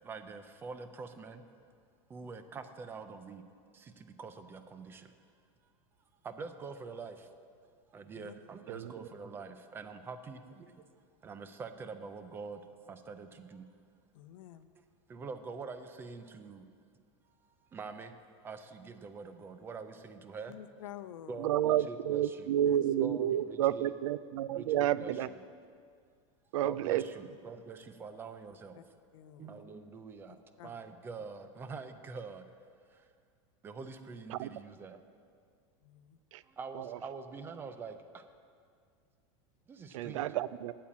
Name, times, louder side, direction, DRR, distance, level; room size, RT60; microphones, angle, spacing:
voice 1, 0.0-1.4 2.1-3.4 3.7-5.1 6.2-7.3 7.9-10.8 11.2-13.7 15.1-16.6 17.2-18.2 18.4-20.5 21.3-22.6 23.0-23.9 24.5-25.1 26.6-28.8 29.4-30.4 30.6-32.5 32.9-33.1 33.6-35.0 36.4-38.3 39.7-40.3, right 4 dB, 15° right, 9 dB, 0.4 m, -45 dB
voice 2, 14.1-14.7 20.5-21.5 22.6-22.8 28.7-28.8 29.1-29.6 30.3-30.7 35.8-36.2, left 11 dB, 90° left, 12 dB, 0.6 m, -50 dB
voice 3, 21.4-25.3 26.5-27.0 34.3-34.5 36.3-36.4 36.7-37.0 39.9-40.7, right 11 dB, 75° right, 17 dB, 0.4 m, -30 dB
8.5 x 7.6 x 8.4 m, 2.2 s
supercardioid pair, 170°, 16 cm